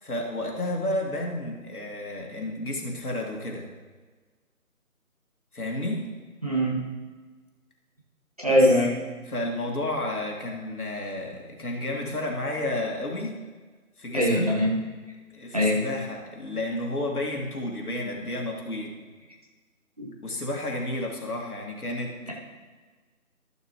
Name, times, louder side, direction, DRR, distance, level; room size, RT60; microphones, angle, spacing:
voice 1, 0.0-3.7 5.5-6.0 8.5-8.7 9.3-13.4 14.0-14.6 15.3-18.9 20.2-22.3, left 1 dB, 80° left, 0 dB, 2.3 m, -31 dB
voice 2, 6.4-6.8 8.4-8.9 14.1-14.7 15.5-15.8 20.0-20.1 22.3-22.4, equal, 25° right, -4 dB, 1.2 m, -22 dB
13.5 x 6.7 x 3.1 m, 1.4 s
figure-of-eight pair, 175°, 44 cm